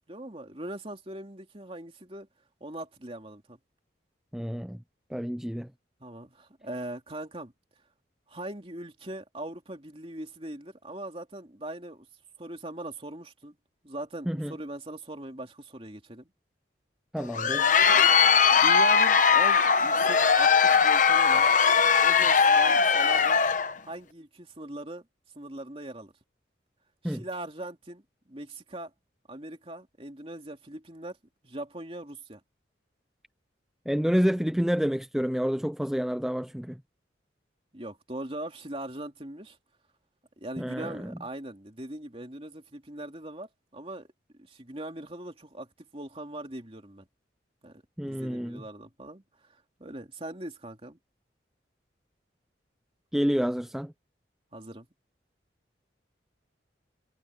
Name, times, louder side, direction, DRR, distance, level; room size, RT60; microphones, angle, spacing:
voice 1, 0.1-2.3 2.6-3.6 6.0-7.5 8.3-12.1 12.4-13.5 13.8-16.3 18.6-21.5 22.0-23.4 23.8-25.0 25.3-26.1 27.0-28.9 29.3-31.2 31.4-32.4 37.7-39.6 40.4-44.1 44.4-45.7 45.9-47.0 47.6-49.2 49.8-51.0 54.5-54.9, right 1 dB, 30° right, 2.9 m, -40 dB
voice 2, 4.3-4.8 5.1-5.7 14.3-14.5 17.1-17.7 27.0-27.2 33.9-36.8 40.6-41.1 48.0-48.6 53.1-53.9, equal, ahead, 0.4 m, -28 dB
Crowd, 17.2-23.7, left 6 dB, 45° left, 1.0 m, -20 dB
head